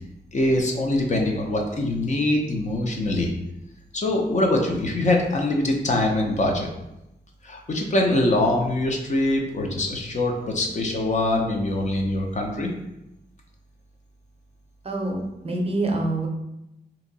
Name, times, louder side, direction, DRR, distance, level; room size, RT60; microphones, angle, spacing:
voice 1, 0.3-3.3 3.9-6.7 7.4-12.7, left 1 dB, 40° left, 1 dB, 0.5 m, -23 dB
voice 2, 14.8-16.3, right 2 dB, 35° right, 0 dB, 0.5 m, -26 dB
2.8 x 2.6 x 3.9 m, 0.88 s
wide cardioid pair, 170°, 18 cm